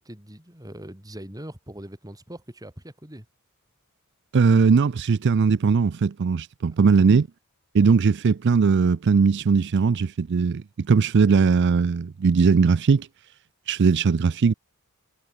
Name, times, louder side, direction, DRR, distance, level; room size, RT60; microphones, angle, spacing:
voice 1, 0.0-3.3 6.7-7.1, right 1 dB, 15° right, 3.9 m, -42 dB
voice 2, 4.3-7.3 7.7-13.1 13.7-14.5, right 5 dB, 55° right, 0.4 m, -19 dB
head